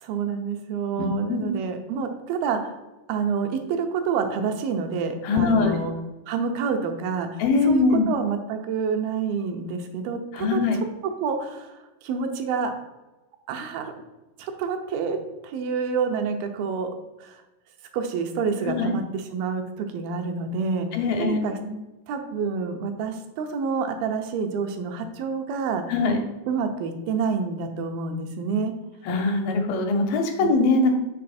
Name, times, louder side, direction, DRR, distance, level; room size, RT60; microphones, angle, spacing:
voice 1, 0.0-2.8 3.1-5.9 6.3-10.6 11.2-12.7 13.5-13.9 14.4-15.2 15.4-16.9 17.2-17.4 17.9-20.9 21.2-21.6 22.1-25.8 26.5-28.7, right 5 dB, 90° right, 5 dB, 2.6 m, -28 dB
voice 2, 1.0-1.4 5.2-5.8 7.4-8.1 10.3-10.8 18.7-18.9 20.9-21.7 25.9-26.2 29.1-30.9, left 3 dB, 80° left, 4 dB, 2.7 m, -22 dB
6.3 x 4.7 x 4.2 m, 1.0 s
omnidirectional pair, 4.2 m